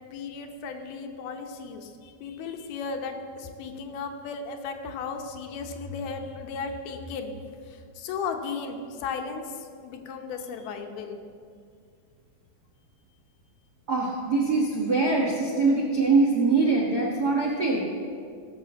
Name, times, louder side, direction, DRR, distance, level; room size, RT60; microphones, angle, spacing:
voice 1, 0.1-11.2, left 5 dB, 80° left, 5 dB, 2.9 m, -35 dB
voice 2, 13.9-17.9, right 3 dB, 75° right, -3 dB, 0.9 m, -23 dB
17.5 x 6.8 x 7.0 m, 2.2 s
omnidirectional pair, 4.4 m